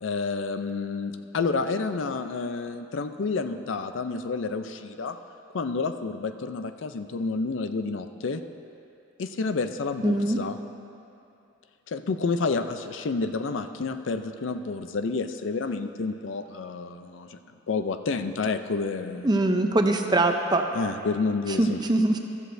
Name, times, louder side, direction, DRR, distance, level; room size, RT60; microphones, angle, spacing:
voice 1, 0.0-5.2 5.5-8.4 9.2-10.6 11.9-17.4 17.7-19.3 20.7-21.8, left 4 dB, 70° left, 9 dB, 0.5 m, -29 dB
voice 2, 10.0-10.4 19.2-20.6 21.6-22.2, right 2 dB, 20° right, 4 dB, 0.6 m, -22 dB
14.5 x 13.5 x 2.6 m, 2.7 s
head